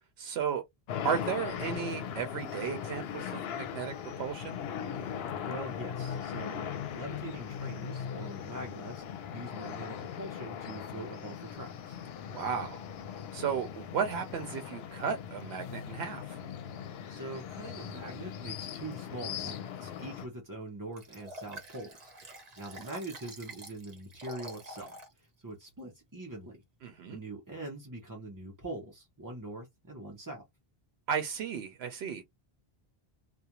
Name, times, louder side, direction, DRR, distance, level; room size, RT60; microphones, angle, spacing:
voice 1, 0.2-0.6 1.0-4.6 12.3-12.8 13.3-16.4 26.8-27.2 31.1-32.2, right 7 dB, 85° right, 0.8 m, -34 dB
sound 1, 0.9-20.3, left 8 dB, 75° left, 0.8 m, -39 dB
voice 2, 5.4-12.0 17.1-22.1 22.6-26.6 27.1-30.5, right 2 dB, 25° right, 0.6 m, -43 dB
Liquid, 21.0-25.1 25.6-25.7, right 2 dB, 45° right, 0.9 m, -47 dB
2.4 x 2.2 x 2.8 m
omnidirectional pair, 1.0 m